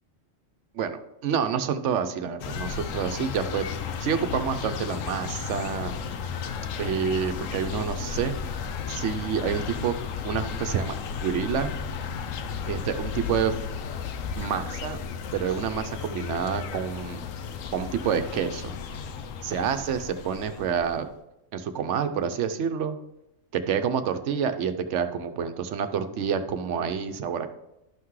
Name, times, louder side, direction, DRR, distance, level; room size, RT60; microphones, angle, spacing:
voice 1, 0.7-3.7 4.0-5.9 6.8-8.3 8.9-9.9 10.2-10.9 11.2-11.7 12.7-13.6 14.4-15.0 15.3-17.2 17.7-18.7 19.4-21.1 21.5-23.0 23.5-27.5, right 7 dB, 70° right, 9 dB, 1.0 m, -28 dB
sound 1, 2.4-21.1, left 6 dB, 90° left, 1.0 m, -34 dB
12.0 x 5.8 x 3.1 m, 0.90 s
omnidirectional pair, 1.3 m